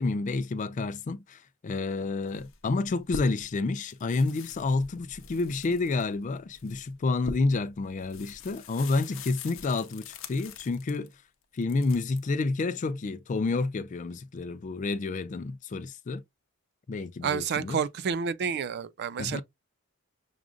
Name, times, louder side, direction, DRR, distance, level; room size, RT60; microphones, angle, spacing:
voice 1, 0.0-11.1 11.5-16.2 16.9-17.8 19.2-19.4, left 3 dB, 35° left, 0.3 m, -29 dB
sound 1, 2.3-3.6 3.9-11.1 11.5-12.2, left 4 dB, 65° left, 0.7 m, -44 dB
voice 2, 17.2-19.4, right 6 dB, 50° right, 0.3 m, -29 dB
6.2 x 2.4 x 2.4 m
head